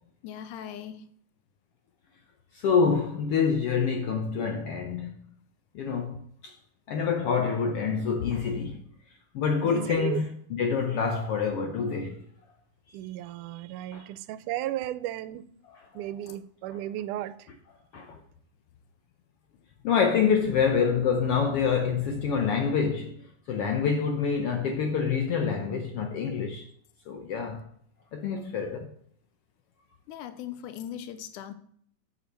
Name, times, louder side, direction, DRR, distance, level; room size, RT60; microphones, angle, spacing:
voice 1, 0.2-1.1 30.1-31.5, left 9 dB, 90° left, 2.1 m, -39 dB
voice 2, 2.5-5.2 5.7-6.5 6.9-8.8 9.3-12.2 13.9-14.0 15.7-15.8 17.9-18.2 19.8-23.2 23.5-26.6 27.1-27.6 28.1-28.9, left 6 dB, 70° left, 1.4 m, -26 dB
voice 3, 9.6-10.2 12.9-15.4 16.0-17.5, right 13 dB, 90° right, 2.1 m, -34 dB
8.2 x 6.6 x 4.6 m
omnidirectional pair, 3.5 m